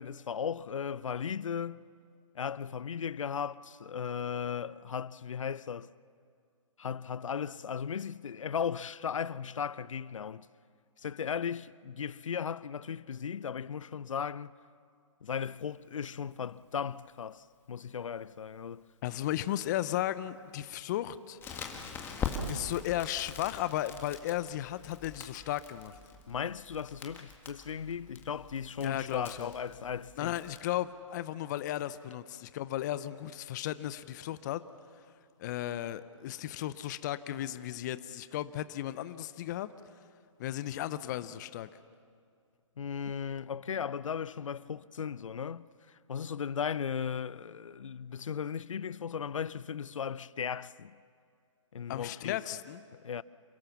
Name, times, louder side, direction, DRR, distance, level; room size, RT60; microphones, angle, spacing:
voice 1, 0.0-1.8 2.3-5.9 6.8-10.5 11.0-14.5 15.2-18.8 26.3-30.3 42.8-51.0 51.7-52.4 52.9-53.2, left 7 dB, 75° left, 0.6 m, -36 dB
voice 2, 19.0-21.4 22.5-26.0 28.8-29.5 30.2-34.6 35.4-39.7 40.4-41.7 51.9-52.8, left 13 dB, 35° left, 0.7 m, -35 dB
Crackle, 21.4-30.6, left 5 dB, 15° left, 1.8 m, -43 dB
27.5 x 17.0 x 7.1 m
hypercardioid pair, 140°, 16 cm